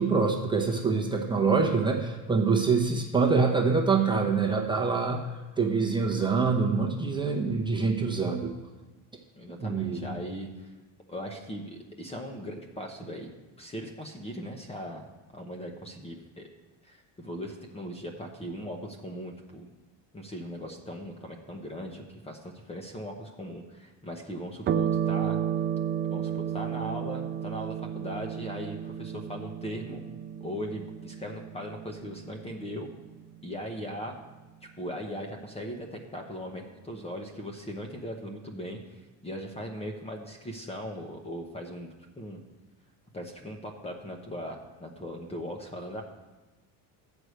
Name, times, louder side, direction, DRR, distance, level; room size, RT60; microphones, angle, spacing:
voice 1, 0.0-5.2 5.6-8.5 9.6-10.2, right 4 dB, 10° right, 0 dB, 1.0 m, -25 dB
voice 2, 9.4-10.7 11.1-13.3 13.6-15.1 15.3-16.5 16.8-19.6 20.1-25.4 26.1-30.0 30.4-32.9 33.4-34.2 34.8-41.9 42.2-42.4 43.1-46.0, equal, 15° left, 2 dB, 0.9 m, -39 dB
sound 1, 24.7-33.5, right 9 dB, 30° right, 0.3 m, -33 dB
12.5 x 4.9 x 7.9 m, 1.1 s
cardioid pair, 155°, 41 cm